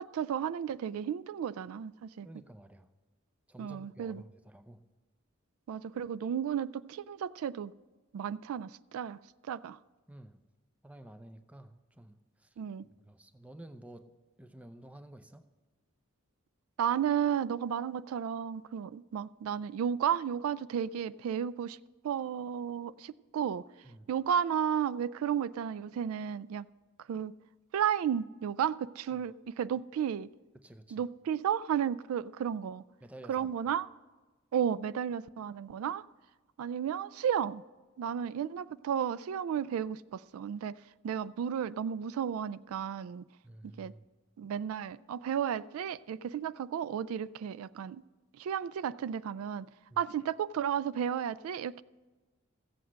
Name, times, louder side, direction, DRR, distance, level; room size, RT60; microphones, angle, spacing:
voice 1, 0.0-2.3 3.6-4.2 5.7-7.7 8.1-9.2 9.5-9.8 12.6-12.9 16.8-21.8 22.0-23.6 24.1-26.7 27.1-27.3 27.7-30.3 30.9-32.8 33.3-33.9 34.5-36.0 36.6-37.6 38.0-40.7 41.0-43.2 43.8-43.9 44.4-48.0 48.4-49.7 50.0-51.8, right 8 dB, 90° right, 19 dB, 0.3 m, -33 dB
voice 2, 2.2-2.9 3.5-4.8 10.1-10.4 10.8-12.6 13.0-14.1 14.4-15.5 23.8-24.1 29.1-29.2 30.5-31.1 33.0-33.5 43.4-44.1 49.9-50.0, right 1 dB, 5° right, 10 dB, 0.5 m, -51 dB
14.5 x 7.9 x 6.3 m, 1.3 s
head